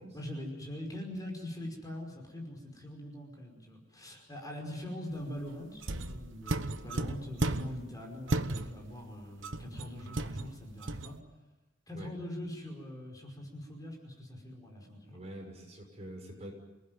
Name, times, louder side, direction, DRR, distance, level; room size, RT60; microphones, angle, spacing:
voice 1, 0.0-11.2 11.9-15.2, left 1 dB, 20° left, 1 dB, 5.3 m, -43 dB
sound 1, 5.8-7.9 8.3-8.9 9.4-11.2, right 2 dB, 75° right, 1.2 m, -35 dB
voice 2, 15.1-16.5, right 1 dB, 35° right, 1 dB, 6.3 m, -45 dB
28.0 x 19.0 x 9.4 m, 1.1 s
head